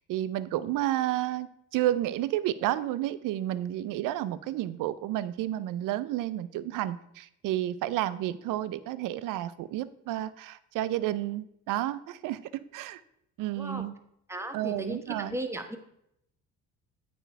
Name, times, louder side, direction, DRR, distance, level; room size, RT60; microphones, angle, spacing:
voice 1, 0.0-1.5 1.7-13.0 13.4-13.9 14.5-15.4, right 13 dB, 75° right, 16 dB, 0.6 m, -31 dB
voice 2, 13.6-13.9 14.3-15.8, right 1 dB, 10° right, 6 dB, 1.1 m, -36 dB
8.9 x 4.5 x 4.5 m, 0.76 s
cardioid pair, 90°, 33 cm